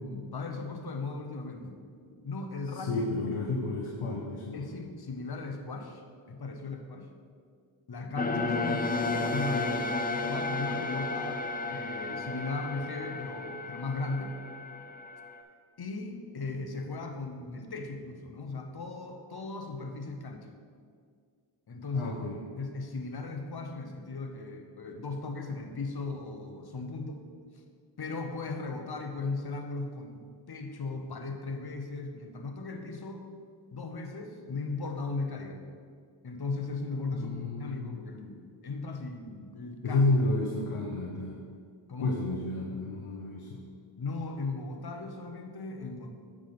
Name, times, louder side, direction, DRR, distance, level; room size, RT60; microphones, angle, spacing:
voice 1, 0.0-3.1 4.5-7.1 7.9-14.4 15.8-20.5 21.7-22.2 22.6-27.2 27.5-27.6 28.0-33.3 33.7-35.7 36.2-37.3 37.6-40.0 40.6-40.9 41.9-42.2 44.0-46.1, left 3 dB, 50° left, 5 dB, 1.1 m, -37 dB
voice 2, 2.7-4.6 21.9-22.4 37.1-38.0 39.8-41.4 42.0-43.6, left 2 dB, 85° left, -1 dB, 0.9 m, -31 dB
sound 1, 8.2-15.4, left 3 dB, 20° left, 0.8 m, -33 dB
8.3 x 3.7 x 6.0 m, 2.1 s
cardioid pair, 45°, 49 cm